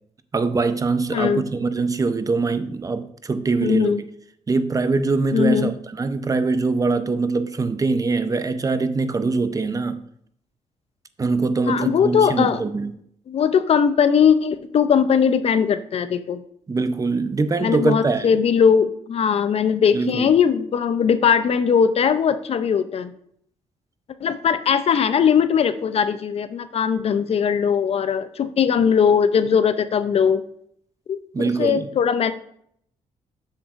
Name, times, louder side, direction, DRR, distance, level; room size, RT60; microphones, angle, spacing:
voice 1, 0.3-4.0 4.5-10.0 11.2-12.9 16.7-18.4 19.9-20.3 31.3-31.9, right 3 dB, 25° right, 0.6 m, -23 dB
voice 2, 1.1-1.4 3.6-4.0 5.3-5.7 11.7-12.6 13.3-16.4 17.6-23.1 24.2-30.4 31.1-32.3, left 7 dB, 50° left, 0.5 m, -19 dB
7.1 x 6.9 x 2.5 m
cardioid pair, 85°, 13 cm